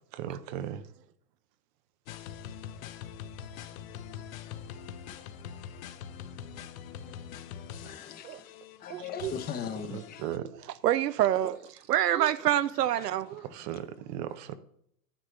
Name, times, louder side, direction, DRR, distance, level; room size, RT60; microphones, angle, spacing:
voice 1, 0.1-0.8 9.9-10.4 13.4-14.5, right 11 dB, 30° right, 0.4 m, -37 dB
sound 1, 2.1-10.4, left 8 dB, 60° left, 1.0 m, -44 dB
voice 2, 7.8-8.5 8.8-10.2 12.9-14.0, left 7 dB, 20° left, 0.8 m, -40 dB
voice 3, 8.9-9.3 10.8-13.5, right 12 dB, 85° right, 0.7 m, -27 dB
10.0 x 9.1 x 3.3 m
hypercardioid pair, 125°, 47 cm